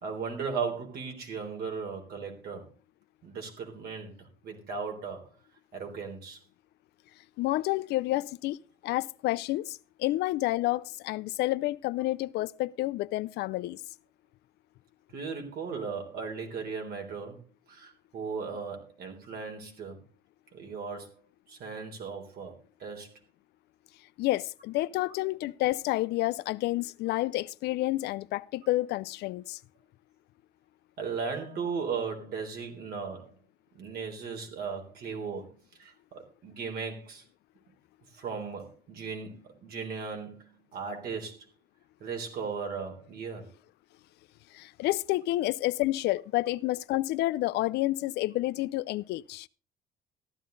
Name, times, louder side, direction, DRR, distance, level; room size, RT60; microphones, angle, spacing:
voice 1, 0.0-2.7 3.2-5.3 5.7-6.4 15.1-17.4 17.7-20.0 20.5-21.1 21.5-23.1 31.0-33.3 33.7-35.5 35.8-37.2 38.1-41.5 42.0-43.5, right 5 dB, 65° right, 3.6 m, -37 dB
voice 2, 7.4-8.6 8.8-13.8 24.2-29.6 44.5-49.5, left 17 dB, 80° left, 0.5 m, -29 dB
14.0 x 11.5 x 3.9 m
cardioid pair, 110°, 17 cm